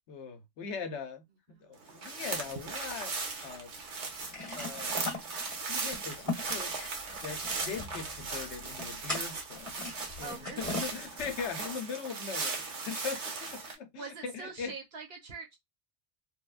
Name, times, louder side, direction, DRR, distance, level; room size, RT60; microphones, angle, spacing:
voice 1, 0.1-3.2 3.4-3.7 4.5-5.1 5.7-6.9 7.2-9.7 10.2-14.7, left 5 dB, 75° left, 1.0 m, -40 dB
sound 1, 1.8-13.7, right 4 dB, 75° right, 1.2 m, -38 dB
sound 2, 2.3-3.5 3.8-3.9 4.1-11.7, left 3 dB, 15° left, 1.2 m, -41 dB
voice 2, 10.2-10.8 13.9-15.6, right 5 dB, 55° right, 1.2 m, -44 dB
3.3 x 2.2 x 2.4 m
omnidirectional pair, 1.2 m